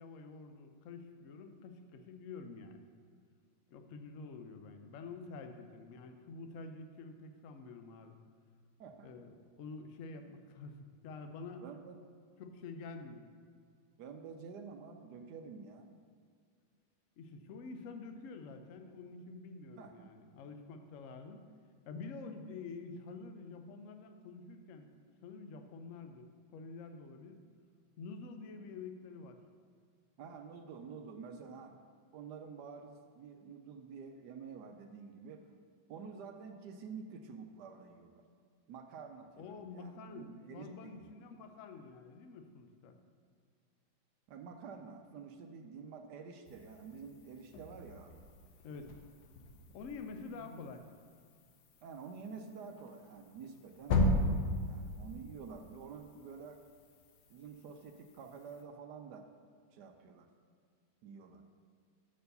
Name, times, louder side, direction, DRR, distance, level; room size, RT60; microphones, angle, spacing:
voice 1, 0.0-2.8 3.7-8.1 9.0-11.6 12.4-13.3 17.2-21.4 21.8-24.9 25.2-27.4 28.0-29.4 39.4-43.0 48.6-49.0 49.7-50.9, left 4 dB, 90° left, 7 dB, 0.6 m, -48 dB
voice 2, 8.8-9.1 11.6-12.0 14.0-15.9 19.7-20.1 30.2-31.8 32.1-35.4 35.9-38.2 38.7-41.1 44.3-48.3 50.3-50.7 51.8-56.6 57.3-59.3 59.7-60.3 61.0-61.4, right 5 dB, 70° right, 5 dB, 1.0 m, -49 dB
sound 1, 46.5-58.6, left 1 dB, 65° left, 1.2 m, -38 dB
7.5 x 4.6 x 6.7 m, 2.1 s
omnidirectional pair, 2.2 m